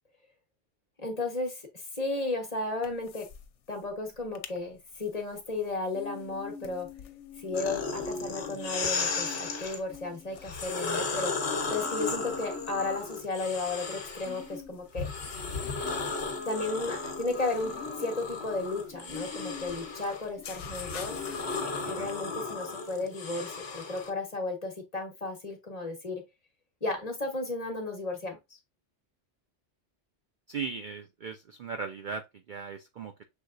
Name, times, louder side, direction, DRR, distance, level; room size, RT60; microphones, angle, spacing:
voice 1, 1.0-3.3 3.7-6.9 7.4-11.3 11.7-15.1 16.5-21.2 21.9-26.2 26.8-28.6, left 3 dB, 35° left, 1.2 m, -34 dB
sound 1, 2.8-3.5 3.7-3.8 4.2-4.6 5.0-22.1, left 6 dB, 85° left, 1.0 m, -45 dB
sound 2, 7.5-9.8 10.4-14.5 14.9-24.1, left 4 dB, 65° left, 1.2 m, -35 dB
voice 2, 21.8-22.1 30.5-33.2, right 5 dB, 60° right, 0.5 m, -38 dB
6.1 x 3.5 x 2.5 m
omnidirectional pair, 1.2 m